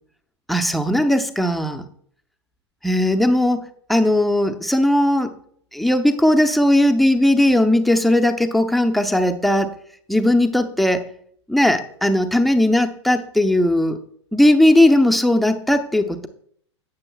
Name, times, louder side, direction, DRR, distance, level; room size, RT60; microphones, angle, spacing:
voice 1, 0.5-1.8 2.8-5.3 5.7-9.7 10.1-11.0 11.5-14.0 14.3-16.3, left 1 dB, ahead, 6 dB, 0.8 m, -17 dB
17.5 x 7.1 x 2.4 m, 0.63 s
figure-of-eight pair, 95°, 15 cm